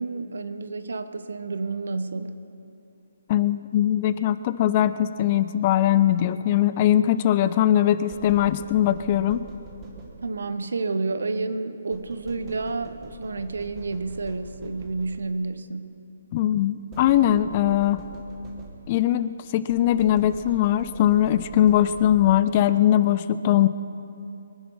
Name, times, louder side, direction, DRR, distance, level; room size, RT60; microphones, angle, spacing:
voice 1, 0.0-2.4 10.2-15.9, right 3 dB, 80° right, 11 dB, 1.0 m, -30 dB
voice 2, 3.3-9.4 16.3-18.0 18.9-23.7, left 11 dB, 25° left, 14 dB, 0.4 m, -21 dB
sound 1, 8.1-10.6 11.9-15.5 16.9-19.1 19.7-22.8, right 2 dB, 15° right, 1.5 m, -44 dB
23.0 x 10.5 x 5.5 m, 2.7 s
hypercardioid pair, 175°, 0 cm